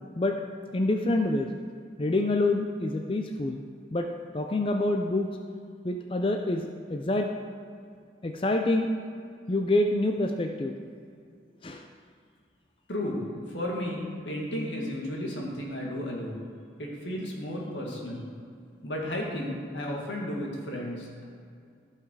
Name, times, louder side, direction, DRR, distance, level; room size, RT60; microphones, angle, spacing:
voice 1, 0.7-1.5 2.0-3.6 3.9-4.1 4.3-5.3 5.8-7.3 8.2-8.9 9.5-10.8 11.6-11.8, left 2 dB, 30° left, 4 dB, 0.4 m, -26 dB
voice 2, 12.9-13.2 13.5-16.5 16.8-18.3 18.8-21.2, left 1 dB, 85° left, -2 dB, 2.2 m, -33 dB
14.5 x 5.8 x 4.7 m, 2.3 s
head